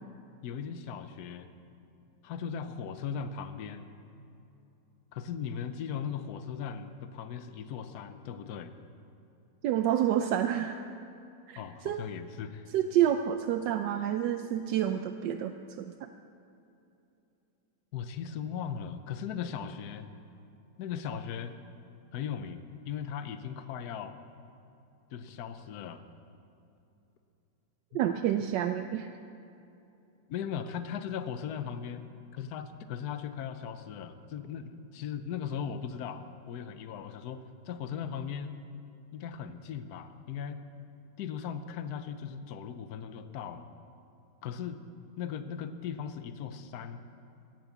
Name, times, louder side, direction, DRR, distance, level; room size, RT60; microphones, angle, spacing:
voice 1, 0.4-1.5 2.2-3.9 5.1-8.7 11.6-12.7 17.9-20.1 20.8-21.6 22.1-24.2 25.1-26.0 27.9-28.0 30.3-32.1 32.3-38.6 39.1-40.6 41.2-43.7 44.4-44.8 45.2-47.0, left 7 dB, 65° left, 10 dB, 1.2 m, -38 dB
voice 2, 9.6-10.8 11.5-12.0 12.7-15.5 15.8-16.1 27.9-29.1, right 10 dB, 80° right, 8 dB, 1.2 m, -28 dB
16.5 x 10.5 x 7.2 m, 2.8 s
omnidirectional pair, 1.9 m